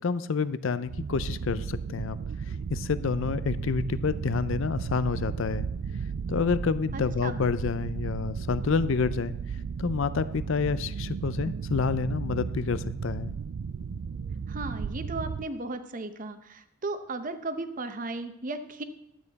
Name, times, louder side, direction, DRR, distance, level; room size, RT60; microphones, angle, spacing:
voice 1, 0.0-2.2 2.7-5.7 6.3-9.3 9.8-13.3, left 5 dB, 60° left, 15 dB, 0.5 m, -28 dB
sound 1, 0.8-15.5, right 6 dB, 65° right, 0.4 m, -34 dB
voice 2, 6.9-7.4 14.5-18.8, right 2 dB, 35° right, 9 dB, 0.8 m, -35 dB
12.0 x 8.7 x 4.1 m, 0.86 s
head